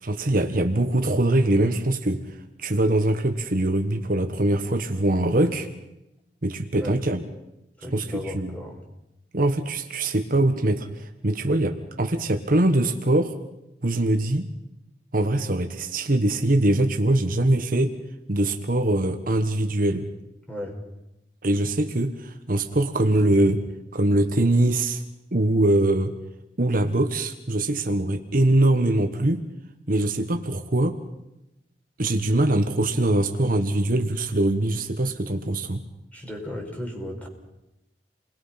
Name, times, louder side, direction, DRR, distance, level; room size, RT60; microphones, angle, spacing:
voice 1, 0.0-5.7 6.4-7.2 7.9-8.5 9.3-13.3 13.8-14.5 15.1-18.0 18.3-20.1 21.4-23.6 23.9-25.0 25.3-26.1 26.6-29.4 29.9-31.0 32.0-35.8, right 1 dB, 55° right, 6 dB, 1.3 m, -22 dB
voice 2, 7.8-8.8 20.5-20.8 36.1-37.3, left 1 dB, 10° left, 0 dB, 5.5 m, -35 dB
29.5 x 21.5 x 5.8 m, 0.92 s
head